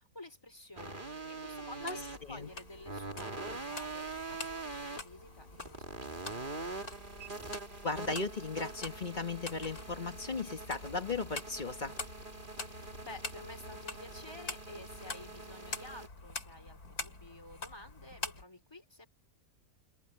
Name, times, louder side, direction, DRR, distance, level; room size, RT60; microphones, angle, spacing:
voice 1, 0.0-6.8 12.6-19.1, left 2 dB, 15° left, 3.4 m, -51 dB
sound 1, 0.8-16.1, right 3 dB, 30° right, 2.8 m, -44 dB
sound 2, 1.7-18.4, left 3 dB, 75° left, 4.4 m, -46 dB
voice 2, 7.8-12.0, left 4 dB, 30° left, 1.6 m, -36 dB
omnidirectional pair, 1.6 m